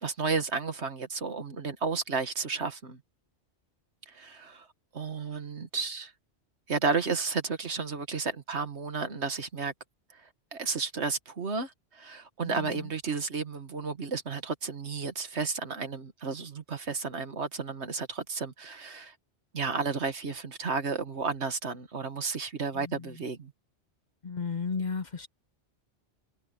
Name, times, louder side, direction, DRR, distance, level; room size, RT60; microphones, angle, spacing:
voice 1, 0.0-3.0 4.1-4.7 4.9-6.1 6.7-9.7 10.2-19.1 19.5-23.5, right 4 dB, 70° right, 1.9 m, -32 dB
voice 2, 12.4-12.8 22.8-23.0 24.2-25.3, left 5 dB, 45° left, 0.9 m, -34 dB
omnidirectional pair, 1.2 m